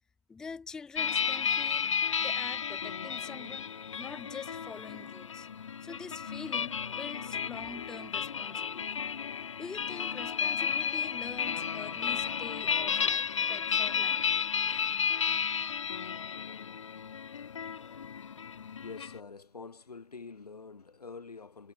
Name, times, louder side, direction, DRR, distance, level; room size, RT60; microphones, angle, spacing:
voice 1, 0.3-1.9 2.2-3.7 4.0-5.5 5.8-9.0 9.6-14.2, left 5 dB, 5° left, 1.3 m, -45 dB
sound 1, 1.0-19.2, left 7 dB, 55° left, 1.0 m, -33 dB
voice 2, 17.3-21.7, left 4 dB, 85° left, 6.1 m, -48 dB
hypercardioid pair, 170°, 19 cm